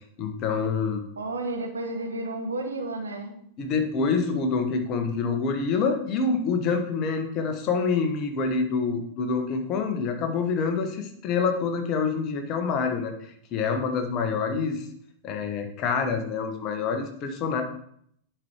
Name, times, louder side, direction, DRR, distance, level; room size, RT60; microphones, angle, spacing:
voice 1, 0.2-1.0 3.6-14.9 15.2-17.6, left 5 dB, 35° left, 5 dB, 1.3 m, -26 dB
voice 2, 1.2-3.4, right 2 dB, 75° right, 4 dB, 1.3 m, -32 dB
10.5 x 4.6 x 4.7 m, 0.68 s
figure-of-eight pair, 90°, 0 cm